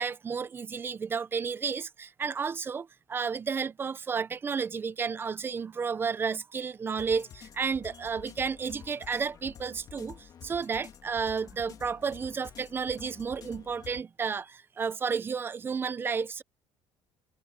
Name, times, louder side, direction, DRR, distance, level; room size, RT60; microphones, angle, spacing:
voice 1, 0.0-10.2 10.4-14.5 14.8-16.4, right 5 dB, 25° right, 0.6 m, -32 dB
sound 1, 7.0-14.0, left 8 dB, 40° left, 3.0 m, -49 dB
cardioid pair, 145°, 10 cm